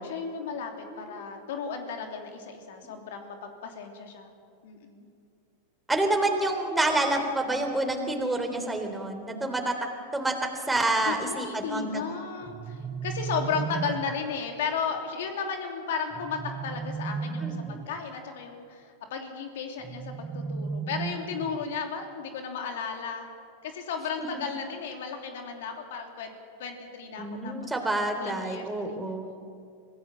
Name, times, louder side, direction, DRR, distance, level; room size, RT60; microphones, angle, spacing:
voice 1, 0.0-4.3 4.6-5.0 11.0-23.3 23.6-26.3 26.6-27.5 28.2-29.3, left 6 dB, 70° left, 4 dB, 3.0 m, -34 dB
voice 2, 0.9-1.2 5.9-9.7 10.1-12.0 17.4-17.8 24.3-24.4 27.2-29.3, right 2 dB, 10° right, 4 dB, 3.6 m, -28 dB
sound 1, 12.4-14.3 16.1-18.0 19.8-21.8, right 5 dB, 25° right, 1.0 m, -35 dB
25.5 x 16.5 x 7.6 m, 2.4 s
hypercardioid pair, 100°, 0 cm